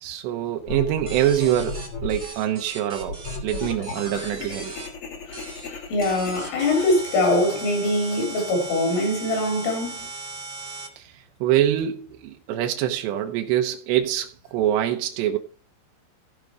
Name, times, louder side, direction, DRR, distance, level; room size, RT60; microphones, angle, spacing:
voice 1, 0.0-4.7 11.0-15.4, right 11 dB, 80° right, 2.6 m, -25 dB
sound 1, 0.7-2.3 3.0-8.5, left 3 dB, 50° left, 1.7 m, -36 dB
sound 2, 1.0-4.9 5.3-5.7 6.0-10.9, right 3 dB, 35° right, 0.5 m, -38 dB
voice 2, 5.7-10.1, left 1 dB, 75° left, 6.4 m, -23 dB
15.0 x 5.2 x 4.9 m
omnidirectional pair, 5.8 m